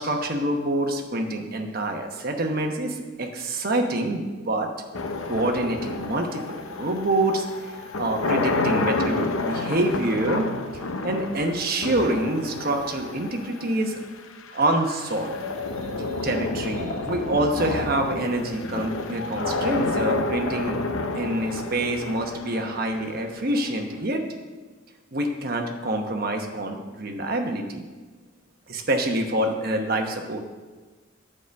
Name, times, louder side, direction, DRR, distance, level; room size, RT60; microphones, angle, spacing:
voice 1, 0.0-4.7 5.3-10.5 11.0-14.0 14.5-15.3 16.2-20.8 21.1-24.2 25.1-27.8 28.7-30.4, right 1 dB, 45° right, 3 dB, 1.0 m, -26 dB
sound 1, 4.9-24.0, left 3 dB, 90° left, 0.7 m, -30 dB
9.1 x 5.0 x 7.0 m, 1.4 s
head